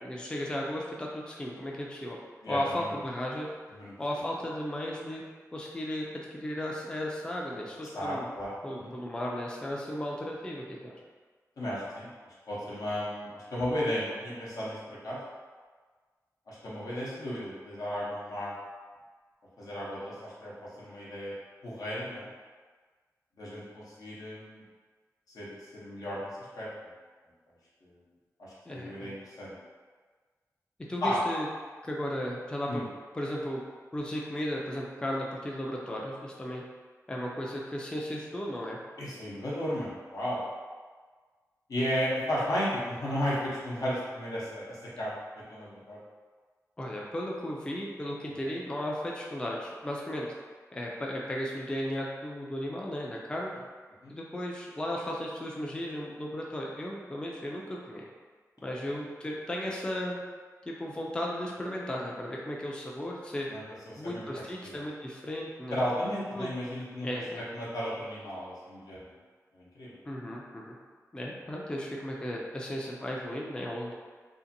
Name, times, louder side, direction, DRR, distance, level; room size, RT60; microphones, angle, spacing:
voice 1, 0.0-2.2 2.5-3.5 4.0-5.2 5.5-8.3 8.6-10.6 28.7-29.2 30.9-31.5 31.8-32.8 33.1-33.6 33.9-36.6 37.1-38.8 46.8-50.3 50.7-53.5 54.1-58.0 58.6-60.2 60.7-63.5 64.0-65.8 66.3-66.5 67.0-67.5 70.1-70.8 71.1-73.9, equal, 15° left, -3 dB, 0.3 m, -35 dB
voice 2, 2.4-2.9 3.7-3.9 7.9-8.5 8.8-8.9 11.6-12.1 12.5-15.2 16.5-18.5 19.6-21.3 21.6-22.3 23.4-24.6 25.3-26.3 26.6-26.7 27.8-28.0 28.4-29.5 31.0-31.2 32.7-32.8 39.0-40.4 41.7-45.1 45.5-46.0 54.0-54.1 63.5-63.6 63.9-64.2 64.6-64.8 65.7-67.1 67.5-69.1 69.5-70.0, equal, 80° left, -7 dB, 0.8 m, -34 dB
2.7 x 2.5 x 2.6 m, 1.5 s
wide cardioid pair, 115°, 6 cm